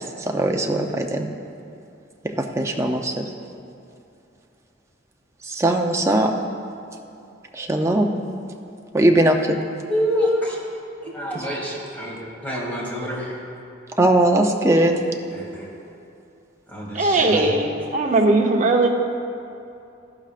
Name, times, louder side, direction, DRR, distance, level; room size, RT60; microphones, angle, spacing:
voice 1, 0.3-1.3 2.4-3.2 5.5-6.3 7.5-8.1 8.9-9.6 14.0-14.9, right 1 dB, 15° right, 2 dB, 0.6 m, -19 dB
voice 2, 9.8-10.6 11.0-13.4 15.3-15.7 16.7-17.5, equal, 10° left, -5 dB, 2.4 m, -27 dB
voice 3, 16.9-18.9, right 2 dB, 40° right, 0 dB, 0.9 m, -19 dB
14.0 x 12.0 x 2.5 m, 2.6 s
head